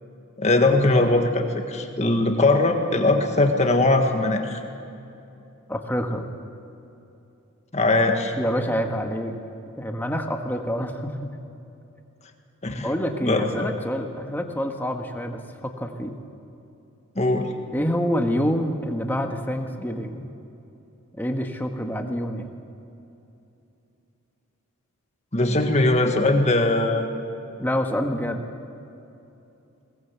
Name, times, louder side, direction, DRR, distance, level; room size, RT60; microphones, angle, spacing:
voice 1, 0.4-4.6 7.7-8.3 12.6-12.9 13.3-13.7 17.1-17.5 25.3-27.1, left 2 dB, 30° left, 4 dB, 1.7 m, -20 dB
voice 2, 5.7-6.3 8.4-9.3 9.8-11.2 12.8-16.2 17.7-20.3 21.1-22.5 27.6-28.5, equal, 10° left, 3 dB, 1.5 m, -27 dB
22.0 x 18.5 x 8.2 m, 2.8 s
head